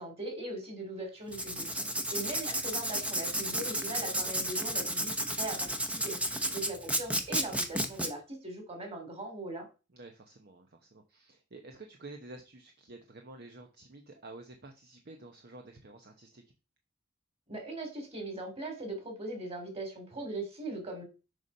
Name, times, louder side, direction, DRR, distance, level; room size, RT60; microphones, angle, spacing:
voice 1, 0.0-1.7 2.1-9.7 17.5-21.0, right 2 dB, 30° right, 4 dB, 3.1 m, -40 dB
Writing, 1.3-8.1, equal, 5° right, 0.9 m, -32 dB
voice 2, 1.7-2.1 6.5-6.6 9.9-16.4, right 2 dB, 50° right, 4 dB, 1.0 m, -50 dB
7.0 x 5.4 x 5.4 m, 0.31 s
head